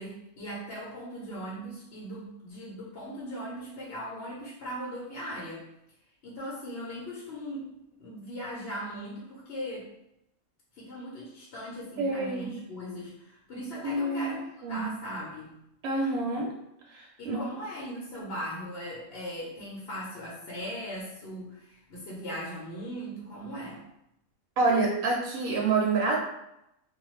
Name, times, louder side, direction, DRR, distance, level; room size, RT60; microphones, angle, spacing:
voice 1, 0.0-5.6 6.2-7.7 8.0-9.9 10.7-14.4 14.7-15.5 17.2-23.8, equal, 55° left, -6 dB, 0.8 m, -39 dB
voice 2, 12.0-12.5 13.8-14.3 14.6-14.9 15.8-16.5 16.9-17.4 24.6-26.2, right 3 dB, 75° right, -2 dB, 1.0 m, -27 dB
2.4 x 2.2 x 3.0 m, 0.82 s
omnidirectional pair, 1.5 m